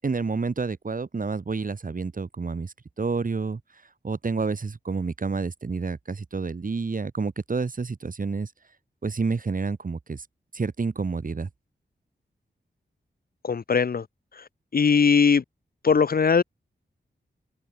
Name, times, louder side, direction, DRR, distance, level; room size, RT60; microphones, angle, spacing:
voice 1, 0.0-3.6 4.0-8.5 9.0-10.3 10.5-11.5, right 4 dB, 50° right, 4.3 m, -29 dB
voice 2, 13.4-14.1 14.3-15.4 15.8-16.4, left 5 dB, 55° left, 0.9 m, -20 dB
open air
wide cardioid pair, 135°, 19 cm